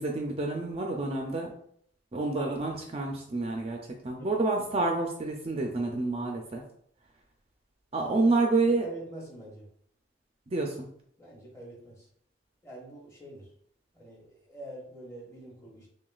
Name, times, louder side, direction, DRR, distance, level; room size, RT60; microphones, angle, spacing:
voice 1, 0.0-1.5 2.1-3.8 4.0-6.6 7.9-8.8 10.5-10.9, right 3 dB, 30° right, 2 dB, 0.4 m, -28 dB
voice 2, 8.0-8.3 8.6-9.7 11.2-12.1 12.6-13.5 13.9-15.9, right 1 dB, 15° left, -4 dB, 1.0 m, -45 dB
5.9 x 2.2 x 2.3 m, 0.66 s
head